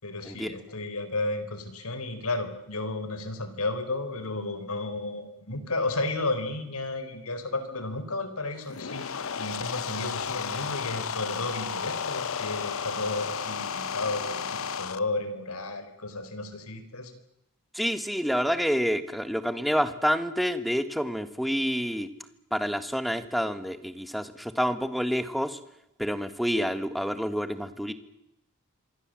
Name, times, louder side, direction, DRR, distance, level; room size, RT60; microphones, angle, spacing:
voice 1, 0.0-17.1, left 2 dB, 85° left, 10 dB, 3.9 m, -33 dB
sound 1, 8.6-15.0, left 6 dB, 65° left, 0.9 m, -33 dB
voice 2, 17.7-22.1 22.5-25.6 26.0-27.9, equal, ahead, 10 dB, 1.5 m, -28 dB
26.5 x 22.0 x 7.6 m, 0.86 s
head